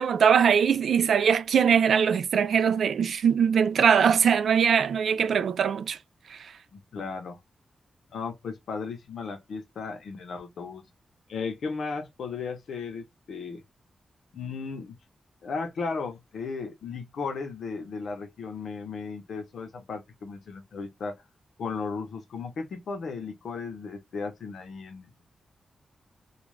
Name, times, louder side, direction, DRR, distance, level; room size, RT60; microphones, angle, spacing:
voice 1, 0.0-6.0 6.3-6.5, right 7 dB, 75° right, 0.4 m, -22 dB
voice 2, 6.7-7.4 8.1-10.9 11.3-13.6 14.3-15.0 15.4-21.2 21.6-25.2, left 4 dB, 75° left, 0.8 m, -35 dB
2.4 x 2.3 x 3.1 m
wide cardioid pair, 130°, 0 cm